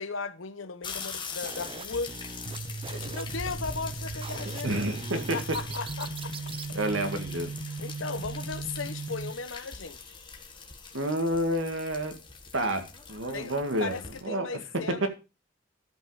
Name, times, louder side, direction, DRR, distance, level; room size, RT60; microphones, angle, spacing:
voice 1, 0.0-2.1 2.9-4.8 5.1-6.3 7.8-10.0 13.3-13.5 13.8-15.1, left 4 dB, 85° left, 1.0 m, -36 dB
sound 1, 0.8-14.2, left 5 dB, 25° left, 1.5 m, -43 dB
sound 2, 1.4-6.7, right 4 dB, 30° right, 0.6 m, -43 dB
sound 3, 2.5-9.3, right 3 dB, 50° right, 1.0 m, -37 dB
voice 2, 4.6-5.4 6.7-7.5 10.9-12.1 12.5-14.5 15.0-15.1, right 1 dB, 80° right, 2.0 m, -29 dB
13.0 x 5.6 x 4.9 m
head